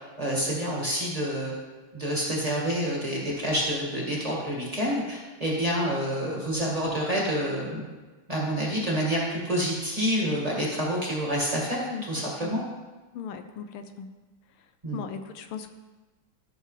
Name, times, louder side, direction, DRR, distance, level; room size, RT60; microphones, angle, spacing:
voice 1, 0.2-1.5 1.9-7.8 8.3-12.6 14.8-15.0, equal, 20° right, -4 dB, 1.9 m, -28 dB
voice 2, 11.9-12.5 13.1-14.1 14.9-15.7, left 7 dB, 85° left, 8 dB, 1.6 m, -38 dB
14.0 x 6.6 x 3.3 m, 1.3 s
omnidirectional pair, 2.4 m